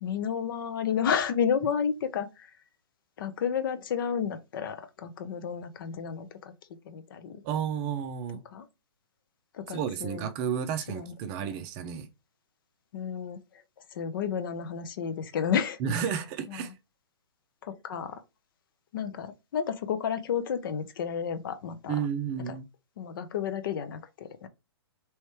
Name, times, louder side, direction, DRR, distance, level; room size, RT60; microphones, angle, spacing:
voice 1, 0.0-2.5 3.2-6.5 6.8-7.4 8.5-8.7 9.5-10.3 10.9-11.1 12.9-13.6 13.9-16.1 16.5-16.7 17.6-18.2 18.9-22.0 22.5-22.6 23.0-24.5, left 7 dB, 50° left, 0.6 m, -31 dB
voice 2, 7.4-8.4 9.7-12.1 15.8-16.7 21.9-22.7, right 8 dB, 30° right, 0.5 m, -32 dB
3.1 x 3.1 x 3.1 m
hypercardioid pair, 130°, 14 cm